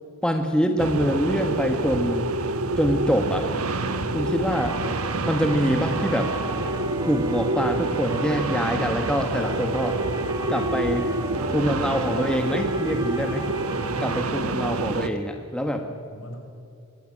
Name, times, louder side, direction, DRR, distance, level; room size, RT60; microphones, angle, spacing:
voice 1, 0.2-2.2 2.8-3.5 4.1-4.8 5.2-6.3 7.0-10.0 10.5-11.2 11.5-13.5 14.0-15.8, equal, 5° left, 4 dB, 1.5 m, -25 dB
sound 1, 0.8-15.1, right 2 dB, 75° right, 1.4 m, -27 dB
voice 2, 3.9-4.2 13.7-14.5 15.7-16.5, equal, 60° left, 2 dB, 6.3 m, -38 dB
sound 2, 4.5-14.2, right 3 dB, 15° right, 1.2 m, -35 dB
24.5 x 19.0 x 9.8 m, 2.5 s
head